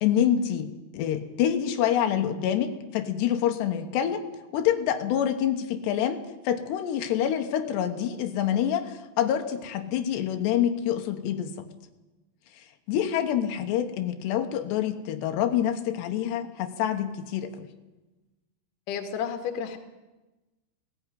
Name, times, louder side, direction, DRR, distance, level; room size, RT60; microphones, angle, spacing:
voice 1, 0.0-4.2 4.5-11.7 12.9-17.7, left 10 dB, 85° left, 7 dB, 3.3 m, -26 dB
voice 2, 18.9-19.8, left 7 dB, 60° left, 7 dB, 3.0 m, -32 dB
17.0 x 16.0 x 9.9 m, 1.1 s
omnidirectional pair, 4.7 m